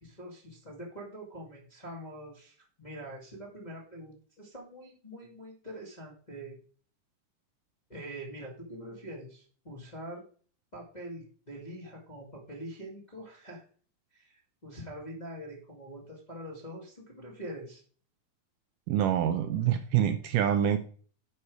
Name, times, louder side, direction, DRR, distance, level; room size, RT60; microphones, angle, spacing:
voice 1, 0.0-6.6 7.9-10.2 10.7-13.6 14.1-17.8, right 1 dB, 15° left, -4 dB, 1.6 m, -44 dB
voice 2, 18.9-20.9, right 10 dB, 80° right, 9 dB, 2.0 m, -26 dB
9.8 x 6.2 x 4.7 m, 0.43 s
omnidirectional pair, 4.1 m